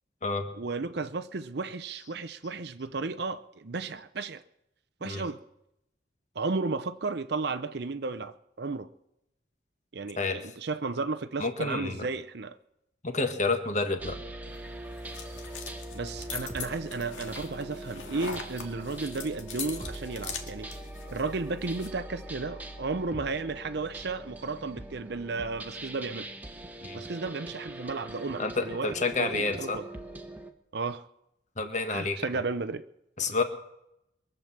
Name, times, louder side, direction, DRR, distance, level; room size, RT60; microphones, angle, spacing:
voice 1, 0.6-4.4 5.0-5.4 6.4-8.9 9.9-12.6 15.9-20.7 21.1-26.3 26.9-29.8 30.7-31.1 31.9-32.8 33.3-33.4, right 3 dB, 60° right, 0.6 m, -34 dB
voice 2, 11.4-12.1 13.0-14.2 26.8-27.0 28.4-29.8 31.6-32.2 33.2-33.4, left 3 dB, 40° left, 1.6 m, -29 dB
sound 1, 14.0-30.5, right 1 dB, 10° right, 1.1 m, -42 dB
sound 2, 14.5-21.9, left 6 dB, 90° left, 2.1 m, -42 dB
22.5 x 8.0 x 7.4 m
head